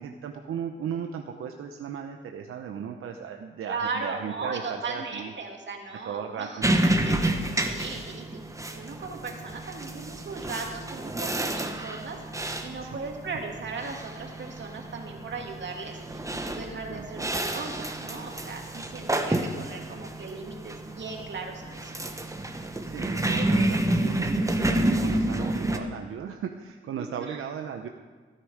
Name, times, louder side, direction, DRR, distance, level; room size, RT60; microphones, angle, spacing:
voice 1, 0.0-5.3 6.0-7.0 12.8-13.1 16.9-17.3 22.9-27.9, right 7 dB, 90° right, 4 dB, 0.8 m, -36 dB
voice 2, 3.7-8.4 8.7-21.9 27.0-27.4, right 4 dB, 60° right, 1 dB, 2.5 m, -37 dB
sound 1, 6.6-25.8, right 1 dB, 15° right, 1.2 m, -29 dB
15.5 x 9.9 x 5.0 m, 1.4 s
cardioid pair, 75°, 21 cm